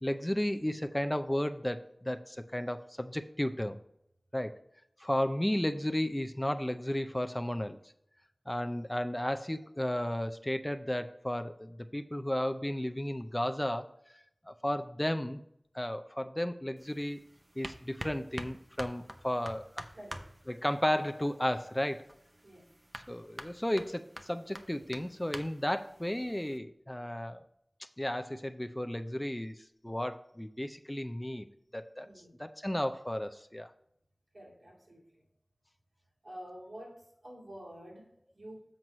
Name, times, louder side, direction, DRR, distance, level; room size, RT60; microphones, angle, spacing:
voice 1, 0.0-3.8 4.3-4.6 5.0-7.8 8.5-13.9 14.5-15.4 15.7-17.2 17.6-19.7 20.5-22.0 23.1-27.4 28.0-29.6 29.8-31.5 31.7-32.1 32.4-33.7, left 1 dB, 15° left, 8 dB, 0.5 m, -33 dB
sound 1, 16.8-26.6, right 1 dB, 25° right, 0.8 m, -48 dB
voice 2, 19.9-20.3 22.4-22.7 32.0-32.3 34.3-35.2 36.2-38.6, equal, 80° right, -4 dB, 2.6 m, -49 dB
7.7 x 4.6 x 5.4 m, 0.75 s
wide cardioid pair, 45°, 0 cm